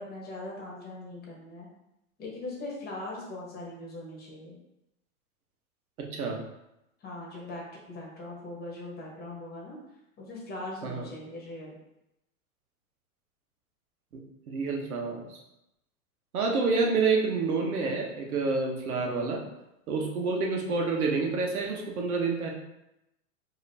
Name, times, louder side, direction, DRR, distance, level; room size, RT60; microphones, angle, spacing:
voice 1, 0.0-1.7 2.2-4.6 7.0-9.8 10.2-11.8, left 2 dB, 20° left, -3 dB, 1.3 m, -40 dB
voice 2, 6.0-6.4 10.8-11.1 14.1-14.2 14.5-15.4 16.3-19.4 19.9-22.5, right 4 dB, 85° right, 1 dB, 1.1 m, -28 dB
5.0 x 2.9 x 2.8 m, 0.88 s
hypercardioid pair, 120°, 43 cm